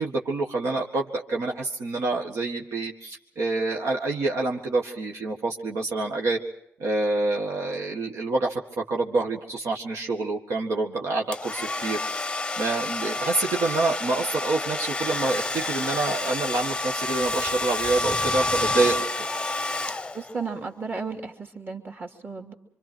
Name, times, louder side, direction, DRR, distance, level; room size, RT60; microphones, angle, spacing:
voice 1, 0.0-6.4 6.8-12.0 12.6-19.0, right 3 dB, 80° right, 0 dB, 1.8 m, -27 dB
Domestic sounds home sounds, 11.3-20.5, left 2 dB, 15° left, 0.7 m, -29 dB
voice 2, 20.1-22.5, right 4 dB, 40° right, 3 dB, 2.9 m, -34 dB
26.0 x 25.0 x 4.5 m, 0.81 s
cardioid pair, 110°, 5 cm